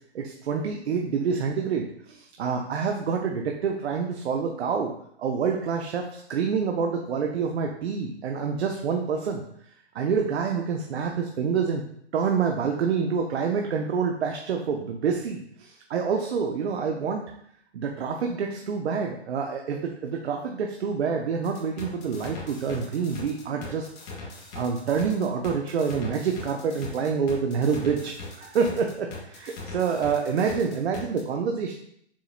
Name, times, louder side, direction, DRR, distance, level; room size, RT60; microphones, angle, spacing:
voice 1, 0.1-4.9 5.2-9.4 9.9-11.8 12.1-17.2 17.7-23.9 24.5-31.8, right 6 dB, 65° right, 2 dB, 0.7 m, -27 dB
sound 1, 21.4-31.2, left 3 dB, 40° left, 1.1 m, -40 dB
7.1 x 2.9 x 2.4 m, 0.70 s
hypercardioid pair, 125°, 34 cm